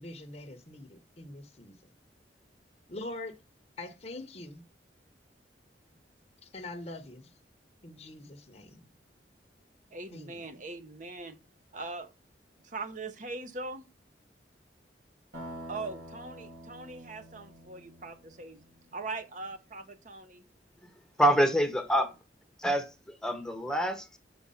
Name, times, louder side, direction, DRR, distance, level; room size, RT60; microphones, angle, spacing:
voice 1, 0.0-1.9 2.9-3.4 3.8-4.6 6.4-7.3 7.8-8.9 10.1-10.4, left 2 dB, 35° left, 0.9 m, -43 dB
voice 2, 9.9-11.4 11.7-12.1 12.6-13.9 15.7-18.6 18.9-20.4, right 3 dB, 45° right, 0.9 m, -41 dB
sound 1, 15.3-19.1, equal, 80° right, 4.5 m, -47 dB
voice 3, 21.2-22.1 22.6-24.2, equal, 5° left, 0.9 m, -26 dB
6.3 x 4.7 x 5.5 m
head